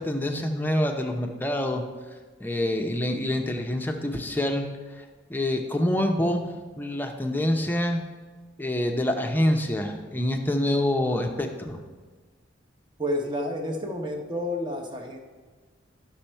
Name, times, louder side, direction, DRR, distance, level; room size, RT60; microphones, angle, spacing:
voice 1, 0.0-1.8 2.4-4.7 5.0-5.1 5.3-8.0 8.6-11.8, left 1 dB, 10° left, 4 dB, 0.6 m, -26 dB
voice 2, 13.0-15.2, left 1 dB, 25° right, 3 dB, 0.8 m, -30 dB
11.5 x 6.1 x 4.4 m, 1.4 s
head